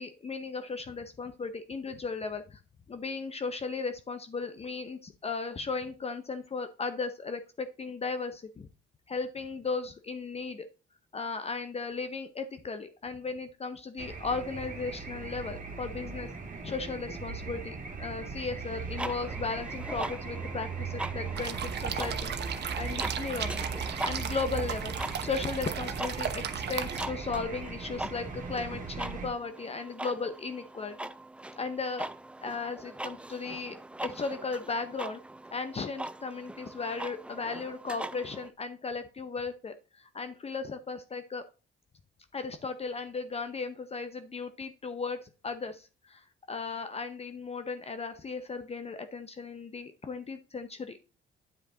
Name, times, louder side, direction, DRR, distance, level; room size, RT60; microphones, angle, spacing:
voice 1, 0.0-2.6 2.9-8.7 9.1-10.7 11.1-16.3 16.6-22.3 22.8-24.9 25.2-31.1 31.6-32.1 32.4-33.8 34.0-35.2 35.5-41.4 42.3-51.0, left 4 dB, 30° left, 9 dB, 0.7 m, -36 dB
sound 1, 14.0-29.3, right 4 dB, 40° right, 2.1 m, -38 dB
sound 2, 19.0-38.5, right 1 dB, 5° right, 0.4 m, -42 dB
sound 3, 21.4-27.1, right 8 dB, 60° right, 1.0 m, -36 dB
9.4 x 5.2 x 3.7 m, 0.33 s
cardioid pair, 90°, 20 cm